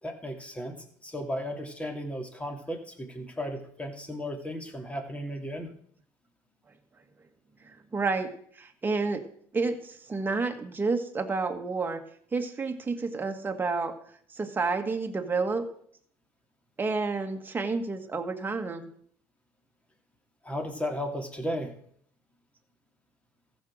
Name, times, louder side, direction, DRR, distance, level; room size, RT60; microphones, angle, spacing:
voice 1, 0.0-5.7 20.4-21.7, equal, 15° left, 4 dB, 2.6 m, -35 dB
voice 2, 7.9-8.3 8.6-9.2 9.5-9.8 10.1-12.0 12.3-13.9 14.4-15.6 16.8-18.9, right 4 dB, 25° right, 5 dB, 1.7 m, -29 dB
14.5 x 6.5 x 6.3 m, 0.62 s
supercardioid pair, 85°, 8 cm